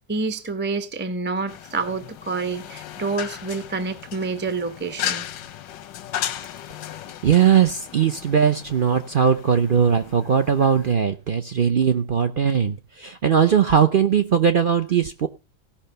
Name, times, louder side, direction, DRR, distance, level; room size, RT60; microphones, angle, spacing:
voice 1, 0.1-5.3, right 3 dB, 10° right, 0.6 m, -28 dB
sound 1, 1.5-10.9, left 11 dB, 90° left, 1.5 m, -35 dB
voice 2, 7.2-15.3, right 7 dB, 70° right, 0.5 m, -19 dB
16.0 x 5.7 x 6.6 m
omnidirectional pair, 1.9 m